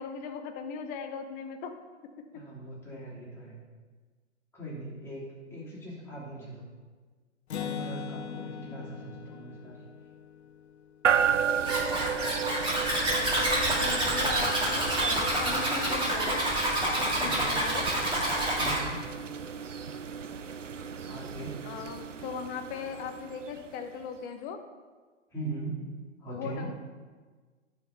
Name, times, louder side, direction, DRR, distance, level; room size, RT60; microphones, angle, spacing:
voice 1, 0.0-1.7 2.3-2.4 8.3-9.0 12.7-16.4 17.2-17.9 21.6-24.6 26.3-26.7, left 6 dB, 25° left, 6 dB, 0.7 m, -39 dB
voice 2, 2.3-3.6 4.5-6.6 7.5-9.8 14.0-14.3 17.2-17.6 18.6-19.0 21.0-21.6 25.3-25.8 26.2-26.7, right 2 dB, 5° left, -8 dB, 3.1 m, -40 dB
Acoustic guitar, 7.5-11.2, left 7 dB, 60° left, 0.8 m, -40 dB
sound 1, 11.0-24.0, right 7 dB, 85° right, 0.5 m, -33 dB
Zipper (clothing), 11.6-18.8, right 1 dB, 15° right, 2.0 m, -28 dB
9.6 x 4.2 x 6.5 m, 1.4 s
figure-of-eight pair, 105°, 36 cm